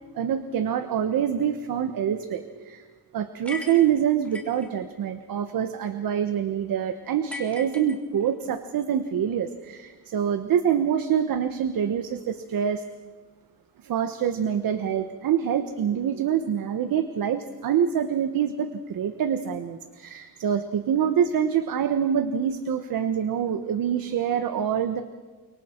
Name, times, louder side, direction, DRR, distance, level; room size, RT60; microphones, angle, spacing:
voice 1, 0.1-2.9 3.1-12.8 13.8-25.0, right 8 dB, 60° right, 9 dB, 1.2 m, -25 dB
sound 1, 3.4-4.7 7.3-8.5, left 2 dB, 5° left, 3.2 m, -39 dB
29.5 x 25.5 x 4.5 m, 1.4 s
cardioid pair, 145°, 38 cm